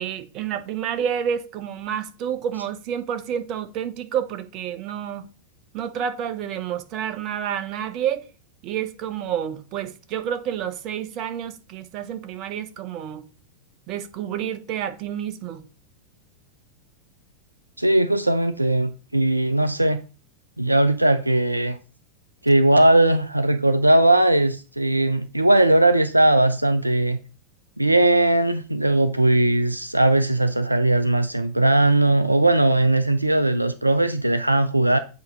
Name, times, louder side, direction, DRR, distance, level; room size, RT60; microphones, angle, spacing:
voice 1, 0.0-5.3 5.7-8.3 8.6-13.3 13.9-15.6, right 9 dB, 40° right, 0.8 m, -29 dB
voice 2, 17.8-20.0 20.6-21.8 22.4-27.2 27.8-35.0, right 1 dB, 85° right, 0.4 m, -19 dB
8.0 x 2.9 x 5.1 m
figure-of-eight pair, 90°, 0 cm